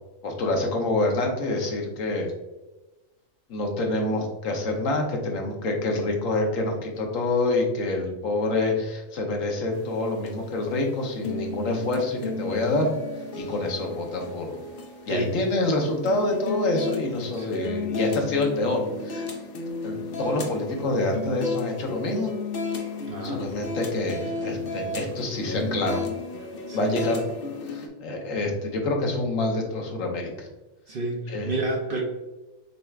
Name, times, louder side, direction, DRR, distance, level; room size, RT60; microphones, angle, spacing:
voice 1, 0.2-2.3 3.5-12.9 13.3-14.5 15.1-19.3 19.8-22.3 23.2-26.0 26.7-27.2 27.7-30.5 31.3-31.5, left 2 dB, 75° left, 2 dB, 1.2 m, -27 dB
sound 1, 9.7-27.9, left 3 dB, 55° left, 0.7 m, -34 dB
voice 2, 23.1-23.4 26.7-27.0 30.9-32.0, right 2 dB, 55° right, 1 dB, 0.7 m, -30 dB
6.6 x 3.3 x 2.4 m, 1.1 s
omnidirectional pair, 1.4 m